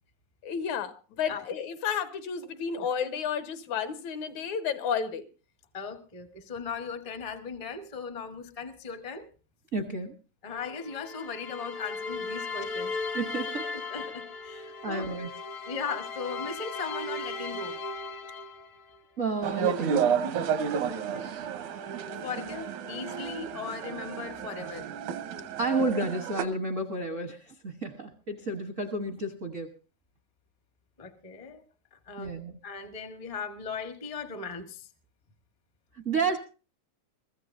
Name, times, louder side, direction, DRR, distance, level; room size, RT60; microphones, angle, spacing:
voice 1, 0.4-5.2, left 7 dB, 80° left, 10 dB, 2.4 m, -31 dB
voice 2, 5.7-9.3 10.4-12.9 13.7-15.1 15.7-17.8 21.1-21.3 22.2-24.9 31.0-31.6 31.9-32.3 32.6-34.9, left 5 dB, 45° left, 6 dB, 0.4 m, -38 dB
voice 3, 9.7-10.1 13.1-13.7 14.5-15.3 19.2-20.2 25.6-29.7 32.2-32.6 36.0-36.4, right 3 dB, 65° right, 5 dB, 0.7 m, -31 dB
sound 1, 10.5-19.0 19.8-23.1, left 3 dB, 65° left, 0.8 m, -38 dB
sound 2, 19.4-26.4, right 8 dB, 85° right, 2.4 m, -31 dB
23.0 x 14.5 x 2.7 m, 0.34 s
omnidirectional pair, 3.3 m